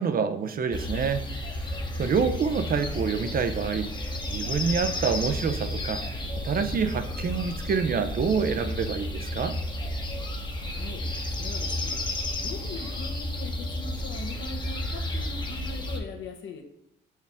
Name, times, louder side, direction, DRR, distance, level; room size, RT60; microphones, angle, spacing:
voice 1, 0.0-3.9 4.3-6.0 6.4-9.6, right 6 dB, 45° right, 9 dB, 0.6 m, -27 dB
sound 1, 0.7-16.0, left 1 dB, 25° left, 0.9 m, -32 dB
voice 2, 10.6-11.1 11.4-16.6, left 4 dB, 75° left, 4 dB, 1.1 m, -41 dB
5.9 x 4.6 x 3.5 m, 0.81 s
cardioid pair, 90°, 20 cm